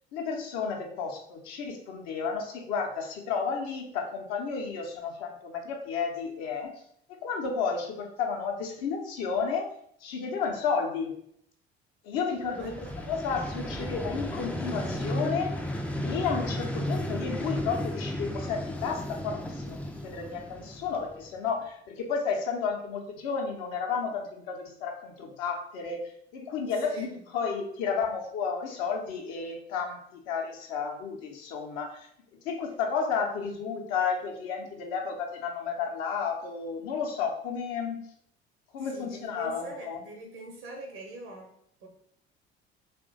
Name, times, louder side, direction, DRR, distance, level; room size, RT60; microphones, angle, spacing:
voice 1, 0.1-6.8 7.1-9.7 10.0-11.1 12.0-12.7 13.1-15.5 16.0-38.1 38.7-40.0, left 5 dB, 55° left, 2 dB, 0.8 m, -32 dB
Vehicle, 12.4-21.4, left 1 dB, 5° left, 0.4 m, -34 dB
voice 2, 12.5-13.1 13.5-13.7 15.1-15.3 26.7-27.3 38.8-41.9, right 2 dB, 65° right, 1 dB, 0.9 m, -44 dB
3.0 x 2.5 x 3.8 m, 0.68 s
figure-of-eight pair, 55°, 32 cm